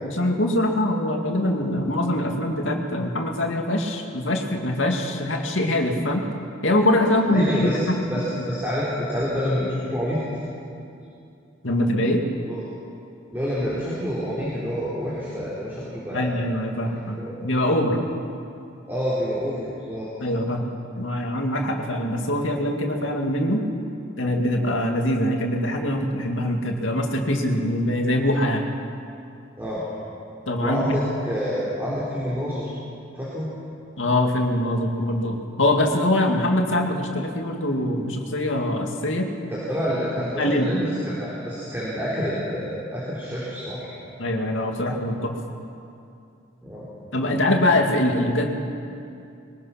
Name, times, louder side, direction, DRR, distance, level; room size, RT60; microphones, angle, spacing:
voice 1, 0.0-6.2 6.6-8.0 11.6-12.2 16.1-18.0 20.2-23.6 24.2-28.7 30.5-30.8 34.0-39.3 40.4-40.7 44.2-45.3 47.1-48.5, left 1 dB, 75° left, 2 dB, 2.3 m, -23 dB
voice 2, 7.3-7.8 8.1-10.2 12.4-12.7 13.3-16.4 17.2-17.4 18.9-20.1 29.6-29.8 30.6-32.7 33.2-33.5 39.5-43.9 46.6-46.9, equal, 10° right, -8 dB, 3.9 m, -28 dB
22.5 x 20.0 x 5.9 m, 2.6 s
head